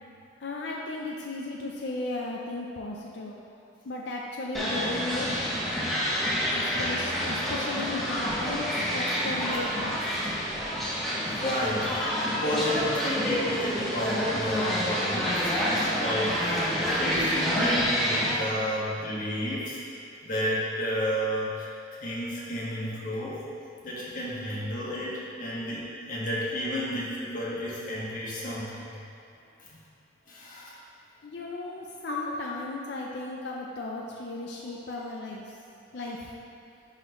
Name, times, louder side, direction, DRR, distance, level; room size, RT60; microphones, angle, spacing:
voice 1, 0.4-3.4 3.9-5.3 6.5-8.6 8.9-9.9 31.2-35.4 35.9-36.2, left 2 dB, 65° left, -2 dB, 0.5 m, -35 dB
sound 1, 4.5-18.3, equal, ahead, 1.1 m, -28 dB
voice 2, 11.2-16.7 17.0-19.8 20.2-21.7 22.0-23.4 23.8-25.8 26.1-29.0 29.7-29.8 30.3-30.7 32.1-32.4 34.9-35.0 36.0-36.1, equal, 45° left, -7 dB, 1.5 m, -32 dB
10.5 x 4.1 x 3.1 m, 2.5 s
head